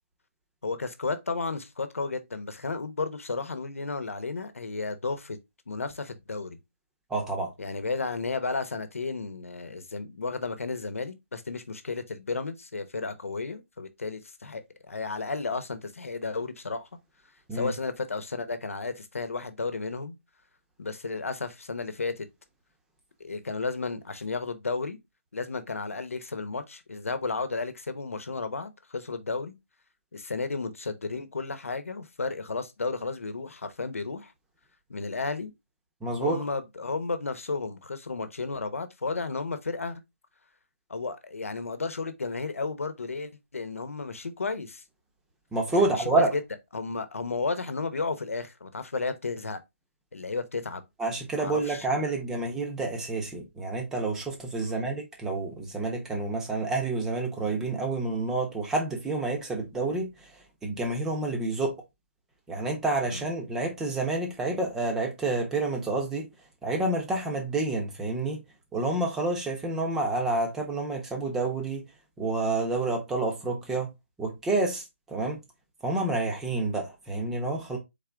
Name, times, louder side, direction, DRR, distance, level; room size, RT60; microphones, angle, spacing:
voice 1, 0.6-5.4 5.7-6.6 7.6-16.9 17.5-20.2 20.8-22.3 23.2-25.0 25.3-29.5 30.1-34.3 34.9-35.5 36.2-40.0 40.9-44.8 45.7-46.4 46.7-49.6 50.1-50.8 51.4-51.9 54.6-54.8 63.1-63.3, left 4 dB, 80° left, 1.0 m, -33 dB
voice 2, 7.1-7.5 17.5-17.7 36.0-36.4 45.5-46.3 51.0-60.1 60.6-61.7 62.5-66.3 66.6-68.4 68.7-71.8 72.2-73.9 74.2-75.4 75.8-77.8, right 2 dB, 5° right, 0.9 m, -29 dB
4.0 x 3.8 x 3.4 m
hypercardioid pair, 165°, 7 cm